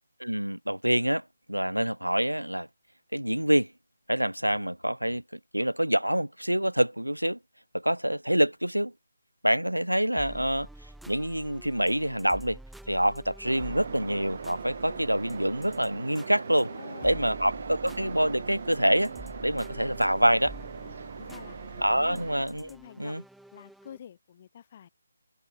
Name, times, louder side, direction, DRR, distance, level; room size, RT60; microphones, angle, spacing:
voice 1, 0.2-2.7 3.1-3.7 4.1-7.4 7.7-8.9 9.4-10.7 11.1-12.6 12.9-16.7 17.0-19.1 19.4-20.5 21.8-22.7 23.0-23.2, equal, 85° right, 0.6 m, -26 dB
sound 1, 10.2-24.0, right 1 dB, ahead, 1.7 m, -49 dB
sound 2, 13.4-22.5, right 5 dB, 45° right, 1.1 m, -40 dB
voice 2, 16.6-17.4 21.2-21.6 21.9-22.2 22.7-23.2 23.5-24.9, left 9 dB, 30° left, 3.3 m, -48 dB
figure-of-eight pair, 150°, 0 cm